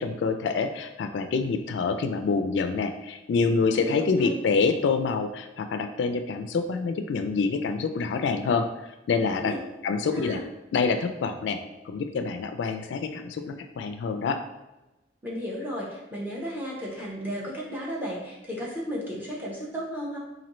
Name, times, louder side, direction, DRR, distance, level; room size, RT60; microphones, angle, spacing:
voice 1, 0.0-8.7 9.1-9.5 9.8-10.4 10.7-11.6 11.9-14.4, left 4 dB, 75° left, 7 dB, 0.3 m, -26 dB
voice 2, 3.8-4.4 9.4-9.6 10.0-10.4 15.2-20.2, equal, 10° right, -5 dB, 0.9 m, -34 dB
4.1 x 2.6 x 3.0 m, 1.0 s
head